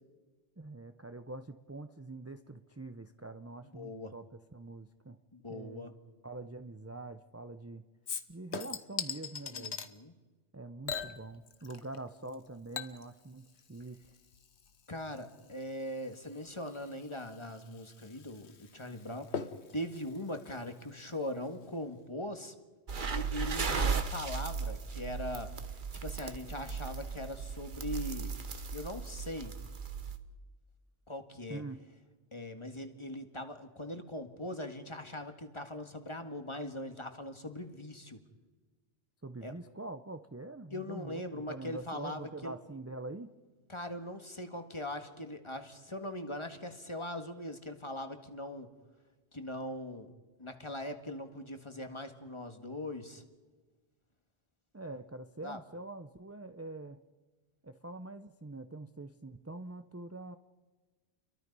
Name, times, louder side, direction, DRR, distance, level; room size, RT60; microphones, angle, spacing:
voice 1, 0.6-4.3 4.5-5.2 5.5-5.9 6.2-7.9 8.3-9.8 10.5-14.0 31.5-31.8 39.2-43.3 54.7-57.0 57.6-60.4, right 2 dB, 15° right, 8 dB, 0.6 m, -45 dB
voice 2, 3.7-4.1 5.3-5.9 9.5-10.1 14.9-19.4 19.7-22.5 23.1-25.5 26.0-28.4 28.7-29.5 31.1-31.6 32.3-38.2 39.4-39.5 40.7-42.6 43.7-48.7 49.3-50.1 50.4-53.2 55.4-55.6, left 1 dB, 25° left, 7 dB, 1.8 m, -41 dB
Chink clink / Liquid, 8.1-9.9 10.9-12.0 12.3-21.3 21.6-21.7, left 6 dB, 90° left, 1.4 m, -43 dB
sound 1, 22.9-30.2, right 5 dB, 50° right, 1.3 m, -36 dB
30.0 x 23.5 x 5.5 m, 1.3 s
omnidirectional pair, 1.1 m